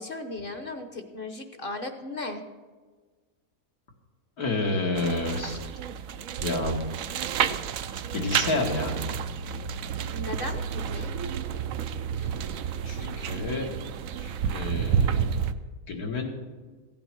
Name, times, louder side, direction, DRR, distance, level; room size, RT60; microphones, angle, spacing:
voice 1, 0.0-2.4 10.1-11.1, left 2 dB, 40° left, 7 dB, 1.1 m, -36 dB
voice 2, 4.4-5.6 6.4-6.8 8.1-8.9 12.2-12.3 12.8-13.7 14.2-15.3 15.9-16.4, left 2 dB, 75° left, 0 dB, 2.3 m, -29 dB
sound 1, 5.0-15.5, right 7 dB, 70° right, 1.0 m, -30 dB
16.0 x 9.0 x 6.1 m, 1.4 s
omnidirectional pair, 1.6 m